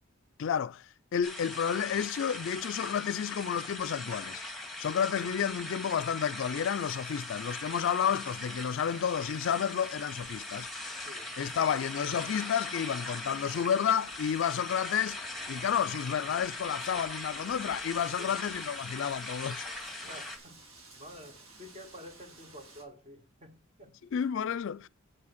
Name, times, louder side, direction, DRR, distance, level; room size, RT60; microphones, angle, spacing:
voice 1, 0.4-4.4 4.8-10.7 11.4-19.9 24.1-24.9, left 8 dB, 60° left, 0.4 m, -31 dB
sound 1, 1.2-20.4, left 2 dB, ahead, 1.9 m, -40 dB
Wind, 6.7-22.8, right 2 dB, 75° right, 2.8 m, -57 dB
voice 2, 11.0-11.6 18.2-18.4 20.0-24.0, equal, 30° right, 1.7 m, -50 dB
sound 2, 12.2-18.8, equal, 55° right, 3.7 m, -60 dB
8.0 x 6.1 x 5.9 m
head